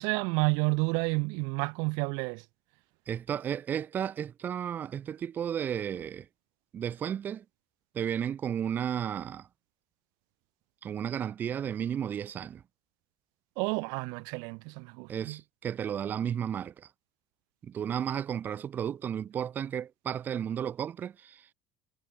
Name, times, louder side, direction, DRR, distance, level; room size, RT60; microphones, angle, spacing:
voice 1, 0.0-2.4 13.6-15.4, right 33 dB, 65° right, 1.8 m, -30 dB
voice 2, 3.1-6.3 6.7-7.4 7.9-9.5 10.8-12.6 15.1-16.9 17.6-21.5, right 9 dB, 25° right, 1.6 m, -33 dB
cardioid pair, 170°, 7 cm